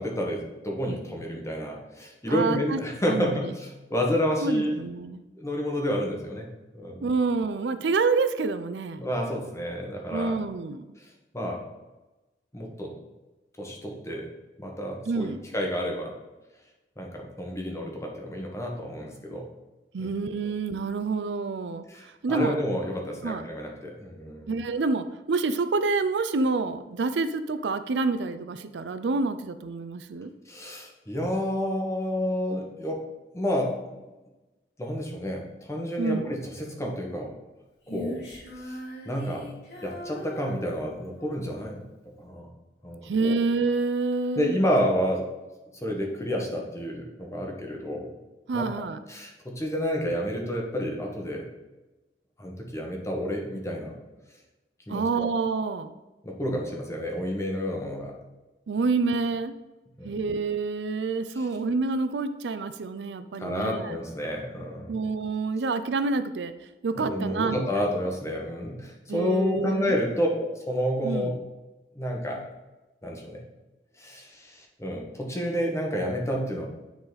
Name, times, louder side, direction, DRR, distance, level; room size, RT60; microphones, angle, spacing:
voice 1, 0.0-4.8 5.4-6.5 6.7-7.1 9.0-10.3 11.3-11.6 12.5-12.9 13.6-14.3 14.6-16.1 17.0-19.5 20.0-20.1 21.9-24.5 30.5-33.0 33.3-33.7 34.8-37.3 37.9-38.2 38.6-38.8 39.0-39.5 39.8-41.8 42.2-42.5 42.8-43.4 44.3-45.3 45.8-48.1 48.5-51.5 52.4-53.9 54.9-55.3 56.2-58.1 60.0-60.2 61.3-61.5 63.4-64.9 66.9-71.3 71.9-72.4 73.0-73.4 74.0-76.7, equal, 15° left, 0 dB, 1.4 m, -30 dB
voice 2, 2.3-2.8 3.1-3.4 4.4-5.2 7.0-9.0 10.1-10.8 15.1-15.4 19.9-22.6 23.2-23.4 24.5-30.3 36.0-36.3 43.0-44.6 48.5-49.0 54.9-55.9 58.7-59.5 60.0-64.0 64.9-66.5 66.8-67.6 69.1-70.0 71.0-71.4, right 4 dB, 75° right, 11 dB, 0.5 m, -28 dB
Female singing, 37.9-41.4, left 1 dB, 85° left, 2.6 m, -40 dB
9.4 x 4.0 x 4.1 m, 1.1 s
head